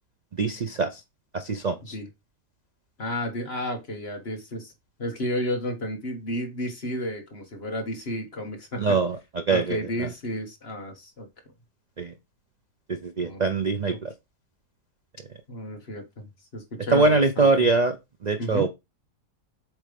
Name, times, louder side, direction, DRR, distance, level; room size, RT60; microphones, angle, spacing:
voice 1, 0.3-1.0 1.3-2.0 8.8-10.1 12.0-12.1 12.9-14.1 16.9-18.0 18.2-18.7, right 3 dB, 60° right, 8 dB, 0.4 m, -23 dB
voice 2, 3.0-4.7 5.0-9.0 9.5-11.3 13.2-13.5 13.9-14.0 15.5-17.5 18.4-18.7, left 1 dB, 40° left, 3 dB, 1.8 m, -32 dB
7.9 x 3.3 x 5.2 m, 0.23 s
omnidirectional pair, 1.7 m